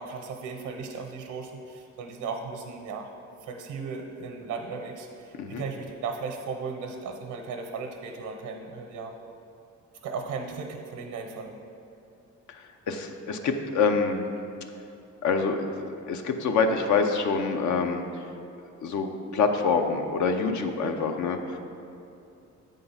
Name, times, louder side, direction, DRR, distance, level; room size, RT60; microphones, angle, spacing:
voice 1, 0.0-3.1 3.4-9.1 10.0-11.6, right 4 dB, 80° right, 3 dB, 0.8 m, -36 dB
voice 2, 12.5-14.2 15.2-15.7 16.1-18.0 18.8-21.6, left 5 dB, 70° left, 5 dB, 0.7 m, -26 dB
7.9 x 3.7 x 5.6 m, 2.7 s
cardioid pair, 90°, 30 cm